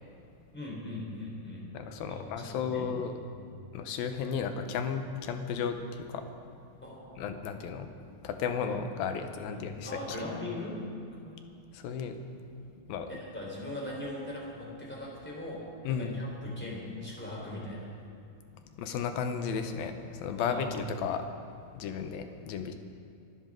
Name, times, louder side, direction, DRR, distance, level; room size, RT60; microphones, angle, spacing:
voice 1, 0.5-1.7 2.1-2.9 3.4-3.5 6.8-7.3 9.5-10.8 11.2-11.4 13.1-15.6 15.9-17.9 20.4-20.7, left 1 dB, 5° left, -4 dB, 3.5 m, -40 dB
voice 2, 1.7-3.1 3.7-6.2 7.2-7.9 8.2-9.9 11.7-12.2 12.6-13.1 15.8-16.2 18.8-21.3 21.7-22.7, left 6 dB, 75° left, 7 dB, 2.6 m, -34 dB
24.5 x 13.0 x 3.8 m, 2.5 s
omnidirectional pair, 4.4 m